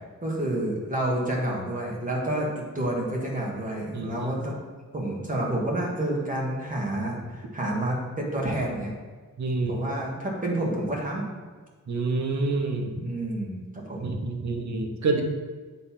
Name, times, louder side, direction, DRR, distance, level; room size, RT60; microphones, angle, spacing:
voice 1, 0.2-4.6 4.9-8.9 9.7-11.3 13.0-14.1, right 1 dB, 25° right, -3 dB, 1.5 m, -29 dB
voice 2, 3.9-4.3 9.4-9.8 11.9-13.0 14.0-15.2, right 3 dB, 55° right, 2 dB, 0.9 m, -27 dB
7.8 x 3.2 x 5.8 m, 1.4 s
wide cardioid pair, 150°, 33 cm